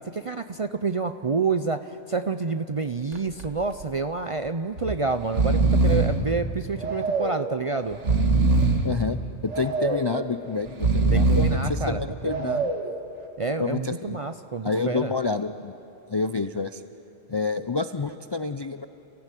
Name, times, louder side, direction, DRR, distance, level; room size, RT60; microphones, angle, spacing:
voice 1, 0.1-1.8 2.1-8.0 11.1-12.6 13.4-15.1, right 4 dB, 40° right, 9 dB, 0.5 m, -28 dB
Breathing, 3.1-3.5 3.8-3.9 4.8-5.0 5.2-6.2 6.8-7.4 7.9-8.9 9.5-10.1 10.7-11.7 12.3-12.9, right 3 dB, 80° right, 2.0 m, -22 dB
voice 2, 8.8-12.7 13.6-14.2 14.6-15.7 16.1-16.8 17.3-18.9, left 4 dB, 40° left, 9 dB, 0.4 m, -28 dB
30.0 x 15.5 x 9.1 m, 2.9 s
omnidirectional pair, 1.2 m